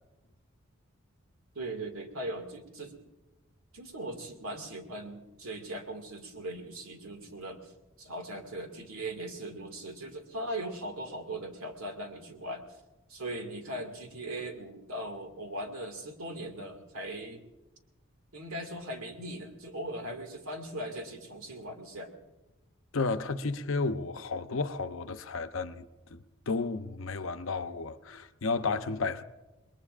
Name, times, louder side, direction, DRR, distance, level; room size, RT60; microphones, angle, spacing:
voice 1, 1.6-3.0 3.7-7.7 8.0-12.7 13.1-17.4 18.3-22.1, right 1 dB, 90° right, 2.1 m, -39 dB
voice 2, 22.9-25.9 26.1-26.2 26.5-29.2, left 3 dB, 75° left, 0.7 m, -32 dB
27.5 x 21.0 x 2.5 m
head